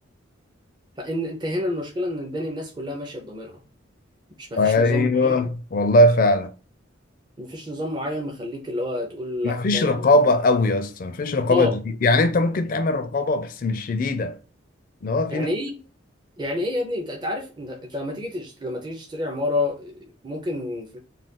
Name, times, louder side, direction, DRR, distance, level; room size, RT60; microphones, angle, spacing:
voice 1, 1.0-3.6 4.4-5.3 7.4-9.9 11.5-11.7 15.3-15.7 16.4-21.0, left 1 dB, 25° right, 0.5 m, -29 dB
voice 2, 4.6-6.5 9.4-14.4 15.0-15.5, left 2 dB, 45° left, 0.4 m, -20 dB
2.4 x 2.3 x 3.5 m
head